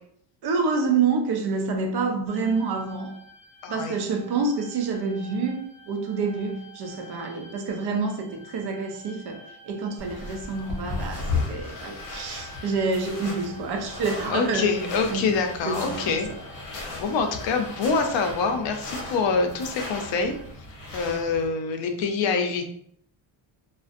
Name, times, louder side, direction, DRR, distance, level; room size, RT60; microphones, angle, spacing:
voice 1, 0.4-3.2 3.7-15.4 15.6-16.2, right 4 dB, 55° right, 4 dB, 0.5 m, -28 dB
sound 1, 2.3-20.4, right 1 dB, 20° left, 1.4 m, -48 dB
voice 2, 3.6-4.0 14.3-16.3 16.7-20.3 20.9-22.7, left 4 dB, 70° left, 5 dB, 0.5 m, -25 dB
sound 2, 10.0-21.5, left 3 dB, 40° left, 0.8 m, -36 dB
2.4 x 2.1 x 2.4 m, 0.67 s
cardioid pair, 145°, 47 cm